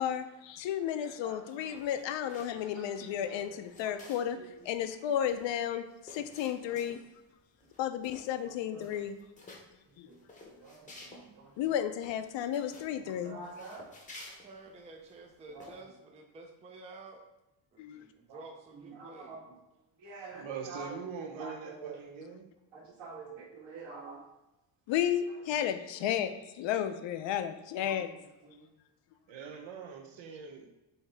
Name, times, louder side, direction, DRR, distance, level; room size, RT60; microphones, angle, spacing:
voice 1, 0.0-4.4 4.6-5.9 6.1-7.0 7.8-9.2 10.0-10.1 11.6-13.4 17.8-18.0 22.2-22.3 24.9-28.1, left 10 dB, 75° left, 9 dB, 0.5 m, -33 dB
voice 2, 1.0-1.7 2.7-4.0 4.3-4.5 6.6-6.8 8.4-8.9 10.0-10.2 10.5-11.5 13.0-13.8 15.5-15.7 18.3-18.4 18.7-19.4 20.0-21.0 21.3-22.0 22.7-24.2 27.8-28.0 28.4-28.6, right 3 dB, 65° right, -4 dB, 1.6 m, -47 dB
sound 1, 1.7-2.6 3.0-4.4 4.7-4.8 5.0-7.2 7.6-7.8 8.0-8.5 8.8-9.6 10.1-11.2 11.6-11.7 12.0-12.9 13.4-15.1 15.6-15.8, left 2 dB, 15° left, 0.7 m, -52 dB
voice 3, 2.6-2.9 20.3-22.5 29.3-30.7, right 6 dB, 85° right, 3 dB, 0.9 m, -43 dB
voice 4, 14.4-17.2 17.7-19.5 29.5-29.6, right 2 dB, 15° right, 2 dB, 0.4 m, -51 dB
5.6 x 2.7 x 3.3 m, 0.97 s
cardioid pair, 170°, 45 cm